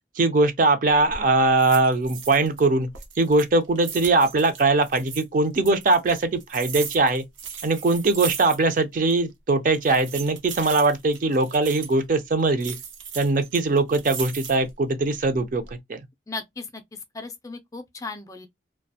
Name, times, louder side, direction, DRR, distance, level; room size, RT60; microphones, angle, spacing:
voice 1, 0.2-2.9 3.2-7.2 7.6-12.8 13.2-15.6 15.9-16.0, right 3 dB, 45° right, 0.4 m, -21 dB
sound 1, 0.9-1.2 1.6-2.6 2.9-5.2 5.6-8.8 9.1-9.2 9.7-12.0 12.6-14.7 15.2-15.7, right 7 dB, 90° right, 0.7 m, -37 dB
voice 2, 16.3-16.8 17.1-18.5, left 3 dB, 20° left, 0.3 m, -36 dB
2.3 x 2.1 x 2.6 m
head